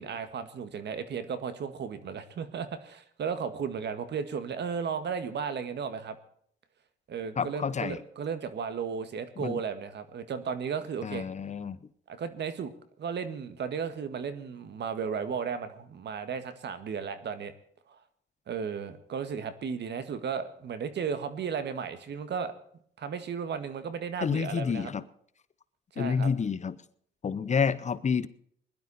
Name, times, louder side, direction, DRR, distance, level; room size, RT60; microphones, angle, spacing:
voice 1, 0.0-6.2 7.1-11.3 12.1-12.7 13.0-17.5 17.9-18.0 18.5-22.5 23.0-24.9 25.9-26.3, right 6 dB, 60° right, 11 dB, 1.8 m, -34 dB
voice 2, 7.4-8.0 9.4-9.6 11.0-11.8 24.2-25.0 26.0-26.7 27.2-28.3, left 6 dB, 35° left, 16 dB, 0.8 m, -29 dB
20.5 x 12.0 x 4.2 m, 0.63 s
cardioid pair, 90°, 20 cm